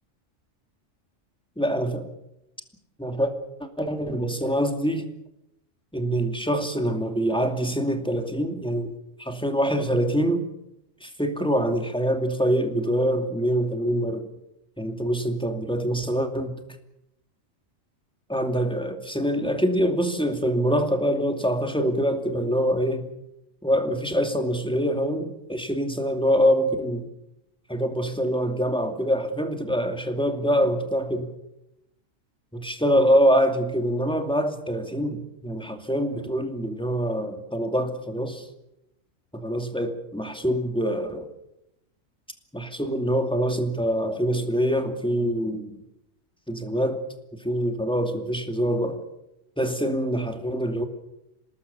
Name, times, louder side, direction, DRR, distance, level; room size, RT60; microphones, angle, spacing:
voice 1, 1.6-2.1 3.0-3.3 3.6-5.1 5.9-8.9 9.2-10.5 11.0-14.3 14.8-16.6 18.3-23.1 23.6-27.1 27.7-31.3 32.5-38.5 39.3-41.3 42.5-45.8 46.5-47.0 47.4-49.0 49.6-50.8, equal, 5° left, 6 dB, 2.5 m, -25 dB
26.5 x 19.0 x 7.0 m, 0.85 s
omnidirectional pair, 1.4 m